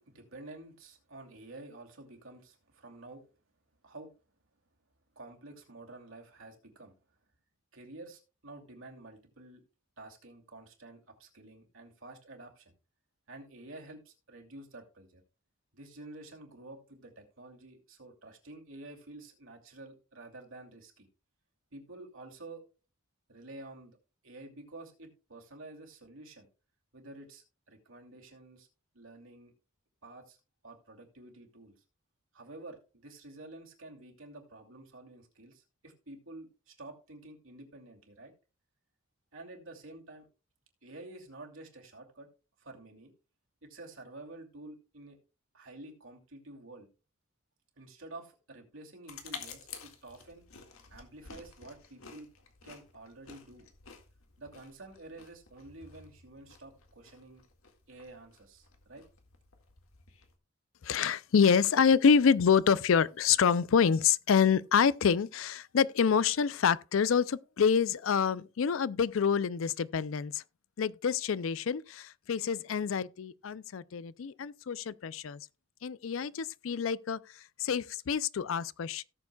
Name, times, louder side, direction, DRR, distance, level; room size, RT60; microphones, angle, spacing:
voice 1, 0.0-3.2 3.8-4.1 5.2-6.9 7.7-9.6 10.0-12.7 13.3-15.2 15.7-21.1 21.7-22.6 23.3-24.0 24.2-26.5 26.9-28.7 28.9-29.5 30.0-30.4 30.6-31.7 32.3-38.3 39.3-40.3 40.8-42.3 42.6-43.1 43.6-45.2 45.5-46.9 47.8-50.4 50.9-52.3 52.6-53.7 54.4-57.4 57.9-59.0, right 2 dB, 70° right, 2.6 m, -50 dB
sound 1, 49.1-60.4, left 6 dB, 90° left, 1.9 m, -51 dB
voice 2, 60.8-70.4 70.8-75.4 75.8-77.2 77.6-79.0, left 6 dB, 70° left, 0.4 m, -27 dB
17.5 x 7.1 x 2.3 m
head